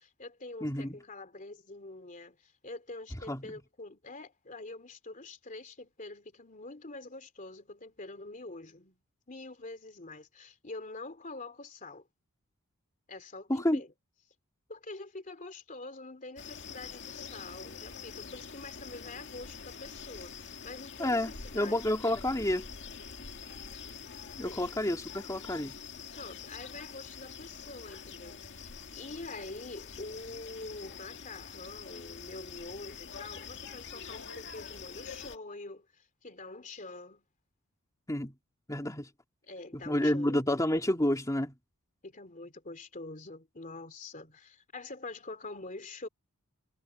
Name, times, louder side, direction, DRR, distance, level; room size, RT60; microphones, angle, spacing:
voice 1, 0.0-9.0 9.3-12.1 13.1-13.9 14.7-21.8 24.4-24.6 26.1-37.2 39.4-40.4 42.0-46.1, left 2 dB, 35° left, 3.0 m, -45 dB
voice 2, 0.6-1.0 3.3-3.5 13.5-13.8 21.0-22.7 24.4-25.7 38.1-38.3 38.7-39.1 39.9-41.5, left 1 dB, 15° left, 2.8 m, -29 dB
sound 1, 16.4-35.4, left 6 dB, 55° left, 2.0 m, -45 dB
head